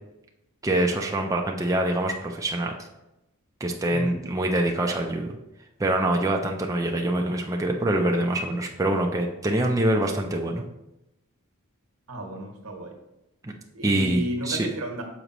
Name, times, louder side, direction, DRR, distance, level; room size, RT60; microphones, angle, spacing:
voice 1, 0.6-2.7 3.6-5.4 5.8-10.6 13.4-13.5 13.8-14.7, right 1 dB, 15° right, 1 dB, 0.4 m, -25 dB
voice 2, 3.9-4.2 12.1-13.0 13.7-15.0, right 1 dB, 85° right, 2 dB, 1.2 m, -33 dB
6.6 x 5.0 x 3.0 m, 0.90 s
head